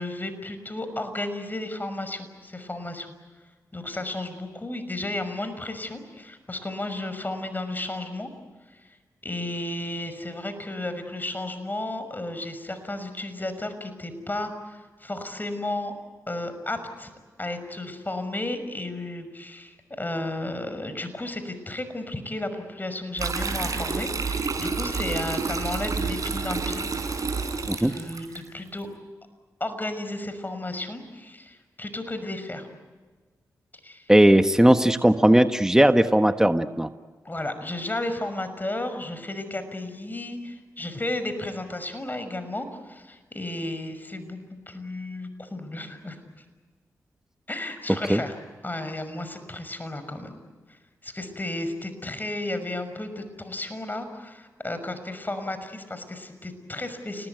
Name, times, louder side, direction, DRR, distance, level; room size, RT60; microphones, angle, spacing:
voice 1, 0.0-3.1 3.7-8.3 9.2-15.9 16.3-17.1 17.4-26.8 27.8-28.9 29.6-32.7 33.8-34.1 37.2-44.4 44.7-46.4 47.5-48.3 48.6-50.3 50.7-50.8 51.0-57.3, left 1 dB, 25° left, 9 dB, 6.1 m, -33 dB
sound 1, 23.2-28.4, right 4 dB, 55° right, 5.5 m, -29 dB
voice 2, 34.1-36.9 48.1-48.2, right 1 dB, 10° right, 8 dB, 1.4 m, -18 dB
30.0 x 19.5 x 9.4 m, 1.4 s
supercardioid pair, 45°, 7 cm